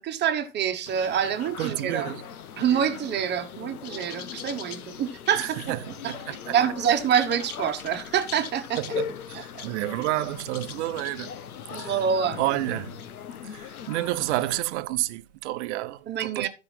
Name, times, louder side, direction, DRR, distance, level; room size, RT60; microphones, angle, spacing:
voice 1, 0.0-2.1 2.6-5.6 6.0-6.1 6.5-8.8 9.3-9.4 11.7-12.4 16.1-16.5, right 8 dB, 25° right, 1.2 m, -26 dB
sound 1, 0.9-14.6, left 8 dB, 90° left, 1.0 m, -39 dB
voice 2, 1.6-2.2 5.4-6.5 8.8-11.3 11.8-12.0 12.4-13.0 13.4-16.5, right 16 dB, 55° right, 0.8 m, -30 dB
12.5 x 5.1 x 4.4 m
hypercardioid pair, 125°, 43 cm